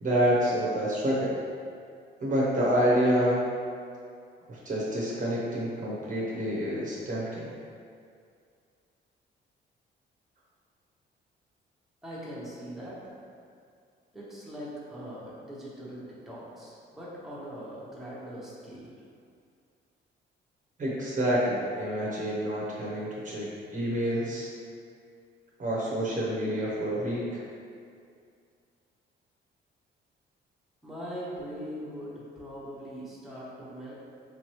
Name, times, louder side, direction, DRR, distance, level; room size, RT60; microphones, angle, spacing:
voice 1, 0.0-1.3 2.2-3.5 4.5-7.5 20.8-24.5 25.6-27.4, equal, 40° right, -6 dB, 0.8 m, -28 dB
voice 2, 12.0-13.1 14.1-18.9 30.8-33.9, equal, ahead, -8 dB, 1.0 m, -41 dB
3.4 x 3.0 x 3.0 m, 2.3 s
cardioid pair, 90°, 20 cm